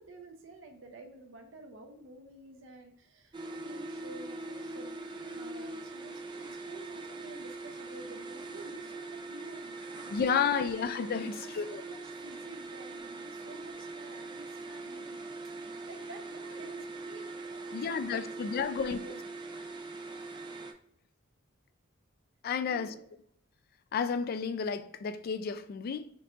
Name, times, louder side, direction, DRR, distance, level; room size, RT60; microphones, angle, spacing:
voice 1, 0.0-4.9 5.3-10.7 11.2-15.2 15.5-19.3 22.5-23.0, right 2 dB, 70° right, 0.6 m, -51 dB
sound 1, 3.3-20.7, right 3 dB, 25° right, 0.4 m, -42 dB
voice 2, 10.1-11.8 17.7-19.0 22.4-22.9 23.9-26.1, left 6 dB, 50° left, 0.3 m, -31 dB
4.5 x 2.4 x 3.9 m
head